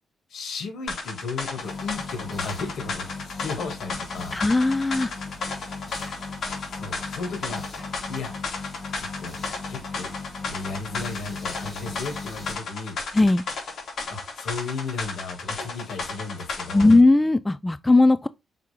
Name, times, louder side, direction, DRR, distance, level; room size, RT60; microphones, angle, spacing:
voice 1, 0.3-4.4 6.7-7.6 8.1-8.3 9.0-9.4 9.7-10.1 10.4-13.0 14.1-16.9, left 4 dB, 70° left, 2.5 m, -35 dB
sound 1, 0.9-17.0, left 4 dB, 55° left, 2.8 m, -34 dB
sound 2, 1.6-12.5, left 3 dB, 30° left, 2.9 m, -38 dB
voice 2, 4.3-5.1 13.1-13.4 16.7-18.3, left 2 dB, 15° left, 0.3 m, -18 dB
5.8 x 4.6 x 3.7 m
cardioid pair, 120°, 0 cm